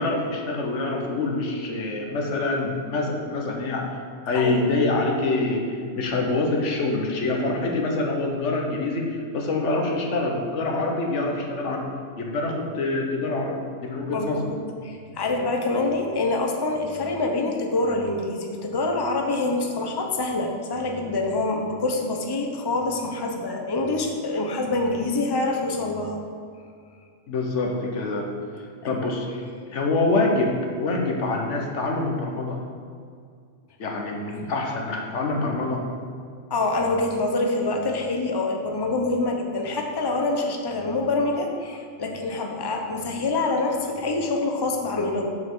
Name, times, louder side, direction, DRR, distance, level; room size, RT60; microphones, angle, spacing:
voice 1, 0.0-3.9 4.2-11.9 12.2-14.5 27.3-28.3 28.8-29.4 29.7-32.6 33.8-35.8, left 2 dB, 70° left, 1 dB, 1.4 m, -25 dB
voice 2, 4.3-4.7 14.1-26.2 28.8-28.9 36.5-45.3, left 2 dB, 25° left, 2 dB, 0.8 m, -26 dB
7.2 x 6.0 x 6.1 m, 2.2 s
omnidirectional pair, 1.3 m